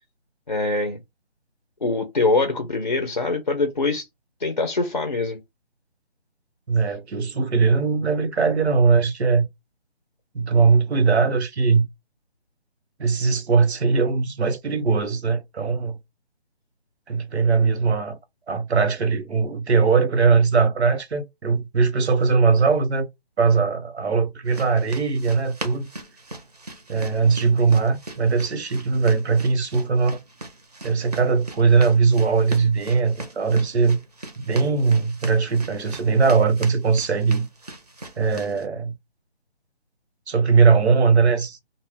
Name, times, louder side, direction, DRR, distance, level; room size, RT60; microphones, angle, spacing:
voice 1, 0.5-1.0 1.8-4.0 4.4-5.4, left 3 dB, 40° left, 0.4 m, -23 dB
voice 2, 6.7-9.5 10.3-11.9 13.0-16.0 17.1-18.2 18.5-23.1 23.4-25.9 26.9-30.2 30.8-34.0 34.4-37.5 38.2-38.9 40.3-41.6, right 5 dB, 90° right, 0.8 m, -20 dB
sound 1, 24.5-38.7, right 2 dB, 40° right, 0.5 m, -39 dB
2.1 x 2.0 x 3.5 m
hypercardioid pair, 170°, 32 cm